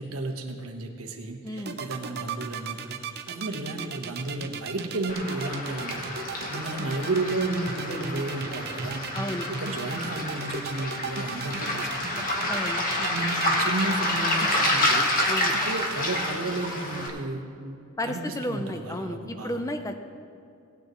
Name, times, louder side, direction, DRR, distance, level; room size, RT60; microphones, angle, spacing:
voice 1, 0.0-3.0 3.3-6.1 6.5-9.0 9.5-12.5 13.0-15.1 15.5-17.8 18.0-19.6, right 2 dB, 80° right, 3 dB, 1.4 m, -33 dB
voice 2, 1.4-1.8 9.1-9.5 12.5-12.9 15.3-15.6 18.0-19.9, left 1 dB, 15° left, 7 dB, 0.6 m, -32 dB
sound 1, 1.6-16.3, right 5 dB, 50° right, 0.7 m, -36 dB
Waves surf, 5.1-17.1, left 1 dB, 40° left, 1.6 m, -28 dB
18.0 x 9.3 x 3.1 m, 2.6 s
head